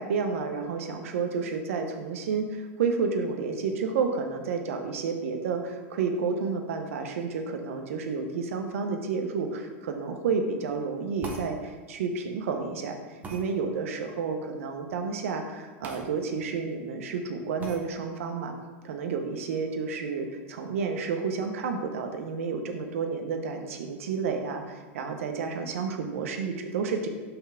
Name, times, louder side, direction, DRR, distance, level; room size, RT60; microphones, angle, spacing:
voice 1, 0.0-18.5 18.8-27.1, right 5 dB, 85° right, 4 dB, 0.9 m, -30 dB
sound 1, 11.2-11.5 13.2-13.4 15.8-16.1 16.4-16.5 17.6-17.8, right 3 dB, 20° right, 1.0 m, -39 dB
5.5 x 3.4 x 5.7 m, 1.3 s
supercardioid pair, 140°, 7 cm